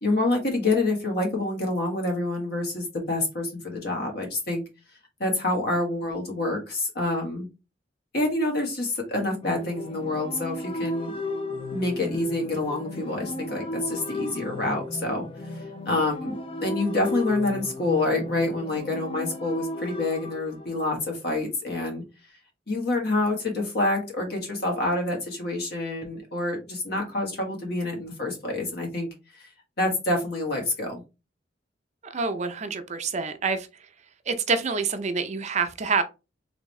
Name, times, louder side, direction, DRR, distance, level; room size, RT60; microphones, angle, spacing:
voice 1, 0.0-4.6 5.2-7.5 8.1-11.1 11.7-15.2 15.8-22.0 22.7-29.5 29.8-31.0, left 2 dB, 60° left, 1.5 m, -27 dB
sound 1, 9.4-21.2, left 2 dB, 30° left, 0.5 m, -35 dB
voice 2, 32.1-33.7 34.3-36.0, right 4 dB, 40° right, 0.5 m, -27 dB
3.6 x 3.4 x 3.1 m
head